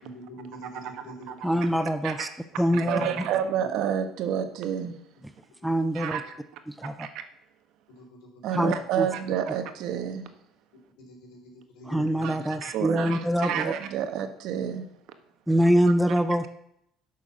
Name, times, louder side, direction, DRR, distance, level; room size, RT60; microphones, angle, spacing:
voice 1, 0.0-1.9 2.6-3.2 3.6-3.7 5.7-5.8 8.0-8.7 11.0-12.4, equal, 80° left, 1 dB, 4.0 m, -45 dB
voice 2, 1.4-2.3 2.6-3.2 5.6-6.2 6.7-7.1 8.5-9.1 11.9-13.7 15.5-16.5, equal, ahead, 11 dB, 0.4 m, -24 dB
voice 3, 2.7-4.9 5.9-6.2 6.8-7.2 8.4-10.3 12.2-14.9, right 9 dB, 55° right, 8 dB, 1.3 m, -29 dB
11.0 x 6.4 x 7.2 m, 0.76 s
cardioid pair, 175°, 0 cm